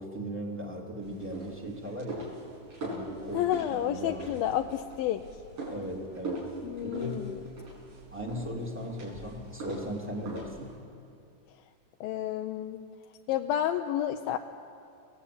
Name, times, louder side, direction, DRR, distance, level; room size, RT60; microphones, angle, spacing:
voice 1, 0.0-2.3 2.8-4.3 5.7-6.5 6.8-7.3 8.1-10.8, equal, 5° right, 0 dB, 2.2 m, -38 dB
sound 1, 1.0-10.8, right 2 dB, 60° right, 7.8 m, -42 dB
voice 2, 3.3-5.2 6.6-7.4 12.0-12.8 13.3-14.4, left 11 dB, 75° left, 5 dB, 2.4 m, -30 dB
30.0 x 18.5 x 8.6 m, 2.5 s
omnidirectional pair, 4.5 m